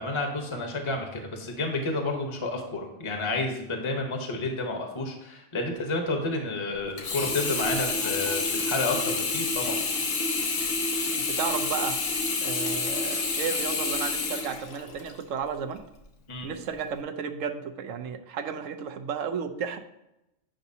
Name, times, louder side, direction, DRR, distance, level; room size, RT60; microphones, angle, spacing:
voice 1, 0.0-9.8 16.3-16.5, left 2 dB, 25° left, 3 dB, 0.9 m, -30 dB
Sink (filling or washing), 7.0-15.2 15.8-15.9, left 3 dB, 75° left, 1.3 m, -28 dB
voice 2, 11.1-12.0 12.4-15.8 16.4-19.8, right 7 dB, 75° right, 7 dB, 1.0 m, -33 dB
8.8 x 5.8 x 2.7 m, 0.89 s
omnidirectional pair, 1.4 m